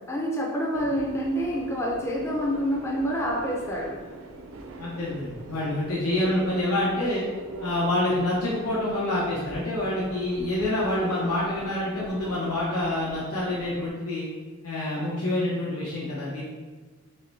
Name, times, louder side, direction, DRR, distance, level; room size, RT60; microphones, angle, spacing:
voice 1, 0.1-3.9, equal, 10° left, -3 dB, 0.4 m, -27 dB
Subway metro underground, 0.7-13.9, right 2 dB, 60° right, 0.4 m, -43 dB
voice 2, 4.8-7.2 7.6-14.3 14.6-16.4, left 1 dB, 85° left, -7 dB, 0.9 m, -27 dB
6.3 x 2.2 x 2.7 m, 1.3 s
head